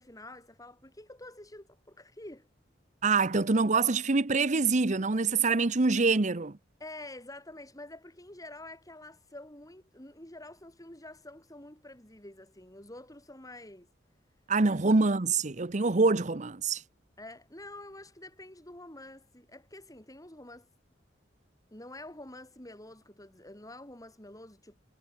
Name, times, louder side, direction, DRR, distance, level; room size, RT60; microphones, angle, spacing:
voice 1, 0.0-2.5 6.8-13.9 17.2-20.7 21.7-24.8, left 1 dB, 20° left, 6.8 m, -48 dB
voice 2, 3.0-6.5 14.5-16.8, right 3 dB, 40° right, 0.9 m, -25 dB
head